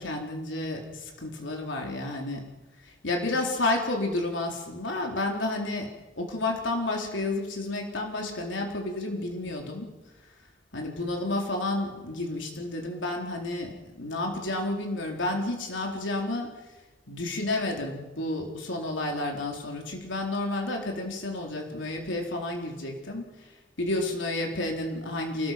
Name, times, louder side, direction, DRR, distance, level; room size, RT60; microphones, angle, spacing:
voice 1, 0.0-2.4 2.8-5.9 6.2-9.8 10.7-16.5 17.1-23.3 23.8-25.5, left 2 dB, 85° left, 1 dB, 4.1 m, -31 dB
28.0 x 18.5 x 6.1 m, 1.1 s
head